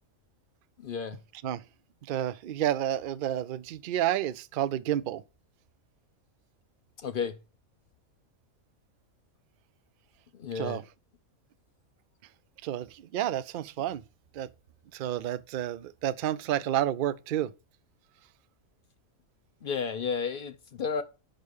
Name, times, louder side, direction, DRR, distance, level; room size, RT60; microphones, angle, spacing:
voice 1, 0.8-1.2 7.0-7.4 10.3-10.8 19.6-21.0, left 6 dB, 55° left, 0.6 m, -32 dB
voice 2, 2.1-5.2 10.5-10.8 12.6-14.0 14.3-14.5 14.9-17.5, right 12 dB, 85° right, 0.4 m, -30 dB
5.4 x 5.2 x 6.4 m
omnidirectional pair, 1.5 m